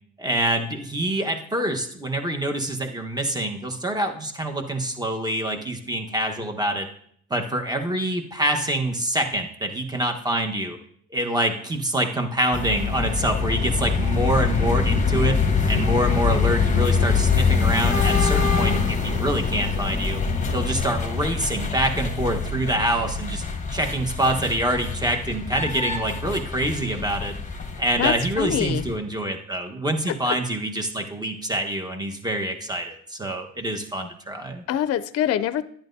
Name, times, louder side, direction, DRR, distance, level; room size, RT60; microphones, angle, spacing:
voice 1, 0.2-6.9 7.3-10.8 11.1-20.2 20.5-23.4 23.7-27.3 27.8-34.6, right 1 dB, 15° right, 4 dB, 1.2 m, -26 dB
sound 1, 12.5-29.0, left 5 dB, 25° left, 1.2 m, -24 dB
voice 2, 28.0-28.8 30.1-30.4 34.7-35.6, left 10 dB, 55° left, 13 dB, 0.5 m, -25 dB
10.5 x 10.5 x 2.7 m, 0.64 s
cardioid pair, 90°, 30 cm